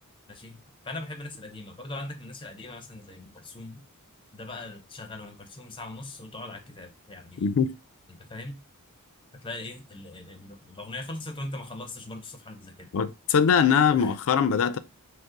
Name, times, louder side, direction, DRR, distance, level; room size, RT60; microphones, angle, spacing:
voice 1, 0.3-3.8 4.3-7.6 8.1-8.6 9.3-12.9 14.0-14.1, left 2 dB, 25° left, 0.7 m, -40 dB
voice 2, 7.4-7.7 12.9-14.8, left 6 dB, 65° left, 0.4 m, -22 dB
5.3 x 2.0 x 3.7 m
head